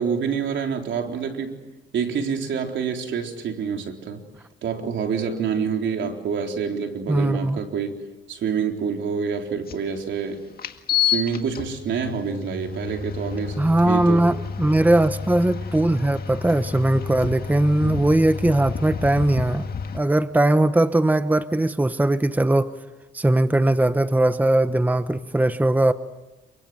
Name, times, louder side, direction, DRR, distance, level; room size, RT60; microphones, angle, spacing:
voice 1, 0.0-1.6 1.9-4.2 4.6-8.0 8.3-10.4 11.0-14.2 17.8-18.0, right 6 dB, 70° right, 3 dB, 4.0 m, -27 dB
voice 2, 7.1-7.6 13.6-19.6 19.9-22.7 23.1-25.9, right 1 dB, 10° right, 11 dB, 1.0 m, -20 dB
sound 1, 9.7-9.8 10.6-20.0, left 7 dB, 50° left, 2.0 m, -30 dB
28.5 x 24.5 x 8.0 m, 1.1 s
cardioid pair, 90°, 20 cm